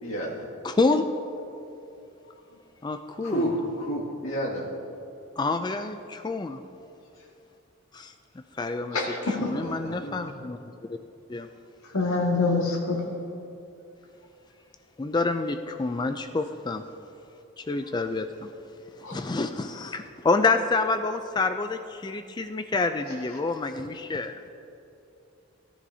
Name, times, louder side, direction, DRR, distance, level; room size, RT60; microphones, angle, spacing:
voice 1, 0.0-0.5 3.2-4.8 9.4-10.5, right 1 dB, 70° left, -4 dB, 2.2 m, -31 dB
voice 2, 0.6-1.0 2.8-3.4 5.4-6.6 7.9-8.1 8.6-10.6 11.3-11.5 15.0-16.8 17.6-18.5 19.1-24.4, left 3 dB, 20° left, 8 dB, 0.3 m, -28 dB
voice 3, 8.9-9.5 11.9-13.0 19.0-19.2, left 3 dB, 90° left, -1 dB, 1.9 m, -25 dB
17.5 x 10.0 x 2.8 m, 2.7 s
head